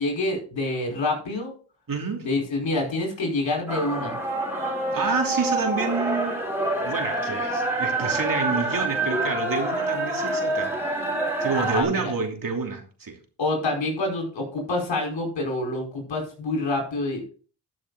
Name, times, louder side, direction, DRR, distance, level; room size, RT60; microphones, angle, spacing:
voice 1, 0.0-1.5 2.2-4.2 11.6-12.1 13.4-17.3, left 2 dB, 70° left, 0 dB, 5.3 m, -27 dB
voice 2, 1.9-2.2 4.9-6.4 6.7-10.7 11.4-13.2, right 4 dB, 45° right, 2 dB, 3.0 m, -28 dB
sound 1, 3.7-11.8, right 2 dB, 5° right, 4.2 m, -27 dB
13.0 x 6.3 x 4.1 m, 0.39 s
cardioid pair, 75°, 46 cm